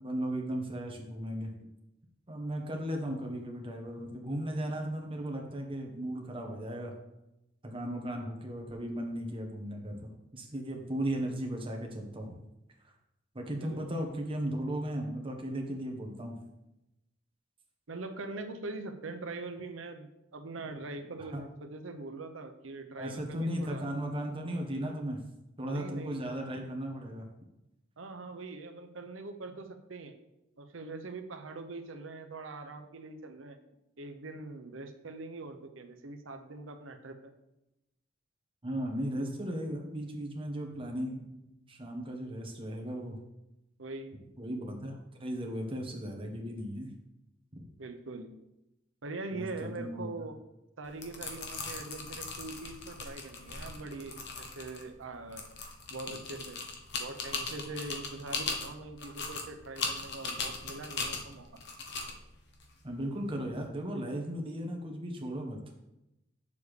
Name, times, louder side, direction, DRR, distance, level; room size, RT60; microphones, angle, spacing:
voice 1, 0.0-1.5 2.3-6.9 7.6-10.0 10.3-12.4 12.8-12.9 13.3-16.3 21.2-21.4 23.0-25.2 25.6-27.2 38.6-43.2 44.4-46.9 47.5-47.7 49.3-50.3 62.8-65.6, right 1 dB, 30° right, 1 dB, 1.3 m, -36 dB
voice 2, 17.9-23.9 25.7-26.2 28.0-30.2 30.6-33.6 34.0-37.3 43.8-44.2 47.8-48.3 49.0-50.4 50.8-55.4 55.9-56.6 57.0-61.5, right 3 dB, 90° right, 7 dB, 0.8 m, -42 dB
sound 1, 50.8-63.6, left 4 dB, 60° left, 1.1 m, -39 dB
8.1 x 6.9 x 3.3 m, 0.91 s
head